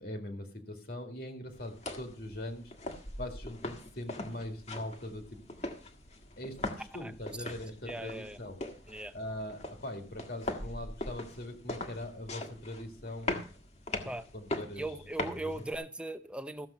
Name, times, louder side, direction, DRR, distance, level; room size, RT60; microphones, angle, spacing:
voice 1, 0.0-2.7 3.2-5.4 6.4-8.6 9.1-13.4 14.3-14.9 15.2-15.7, left 1 dB, 55° left, 4 dB, 2.1 m, -41 dB
sound 1, 1.5-15.7, left 2 dB, 35° left, 1.6 m, -41 dB
voice 2, 7.9-8.4 8.9-9.1 14.0-14.3 14.8-16.7, right 2 dB, 5° right, 10 dB, 0.7 m, -39 dB
14.5 x 7.5 x 5.7 m, 0.39 s
head